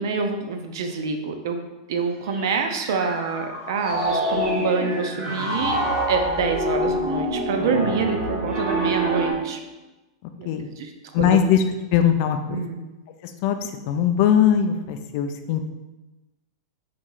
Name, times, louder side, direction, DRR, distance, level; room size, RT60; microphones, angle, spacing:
voice 1, 0.0-9.6 10.4-10.9 11.2-11.4 12.5-12.8, right 5 dB, 65° right, 5 dB, 0.6 m, -27 dB
Piano, 2.3-9.3, right 1 dB, 25° right, 1.0 m, -26 dB
voice 2, 11.1-11.6 11.9-12.6 13.4-15.6, left 9 dB, 45° left, 7 dB, 0.4 m, -20 dB
4.2 x 3.0 x 3.8 m, 1.1 s
supercardioid pair, 165°, 2 cm